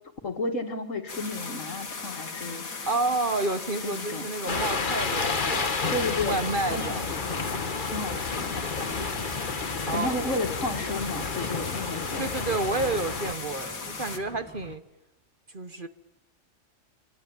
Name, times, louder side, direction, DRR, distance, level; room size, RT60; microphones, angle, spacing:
voice 1, 0.2-2.9 3.8-4.2 5.9-6.4 6.7-7.0 7.8-8.6 8.9-9.3 9.9-12.3, left 2 dB, 65° left, 5 dB, 2.6 m, -32 dB
sound 1, 1.1-14.2, left 4 dB, 90° left, 2.3 m, -38 dB
voice 2, 2.9-5.8 6.2-7.1 9.9-10.3 12.2-14.8 15.5-15.9, right 3 dB, 40° right, 10 dB, 1.2 m, -30 dB
sound 2, 4.5-13.3, left 4 dB, 40° left, 1.4 m, -31 dB
sound 3, 6.3-14.8, left 1 dB, 10° left, 1.3 m, -46 dB
26.5 x 24.5 x 9.0 m, 0.96 s
omnidirectional pair, 1.4 m